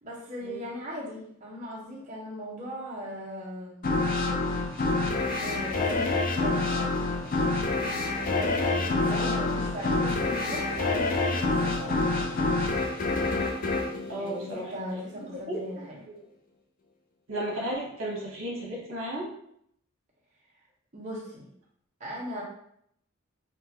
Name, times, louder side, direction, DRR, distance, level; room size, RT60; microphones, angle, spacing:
voice 1, 0.0-4.0 5.1-6.7 8.2-12.6 14.1-15.9 20.9-21.5 22.0-22.4, equal, 35° right, -5 dB, 0.8 m, -39 dB
sound 1, 3.8-15.0, left 3 dB, 40° left, 0.4 m, -27 dB
voice 2, 9.1-9.4 14.1-14.7 15.5-16.2 17.3-19.3, right 1 dB, 75° right, -3 dB, 1.1 m, -34 dB
3.6 x 2.3 x 2.8 m, 0.71 s
head